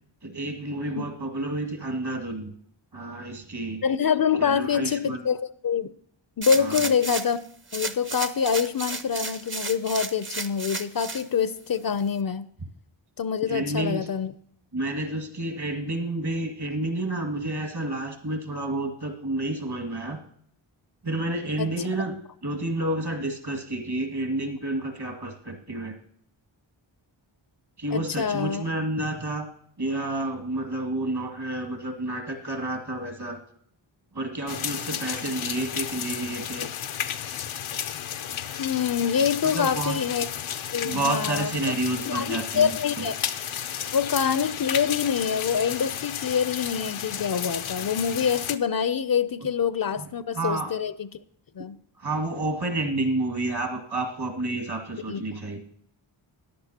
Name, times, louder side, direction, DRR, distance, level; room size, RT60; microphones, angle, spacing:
voice 1, 0.2-2.5 2.9-3.8 4.4-5.2 6.6-6.8 13.5-14.1 14.7-20.2 21.0-22.2 22.4-26.0 27.8-29.5 29.8-33.4 34.1-36.7 39.4-40.1 40.8-43.1 50.0-50.7 52.0-55.6, right 2 dB, 55° right, 3 dB, 2.1 m, -30 dB
voice 2, 3.8-5.9 6.4-7.4 7.7-12.5 13.2-14.3 21.6-21.7 27.9-28.6 38.6-40.3 40.7-41.5 42.1-43.1 43.9-51.1 51.6-51.8 55.1-55.2, left 7 dB, 50° left, 14 dB, 0.5 m, -25 dB
sound 1, 6.4-7.4 7.7-11.2 11.7-11.8, right 3 dB, 25° right, 0.7 m, -33 dB
sound 2, 34.5-48.6, left 9 dB, 90° left, 0.7 m, -33 dB
14.0 x 10.5 x 2.8 m, 0.67 s
wide cardioid pair, 80°, 47 cm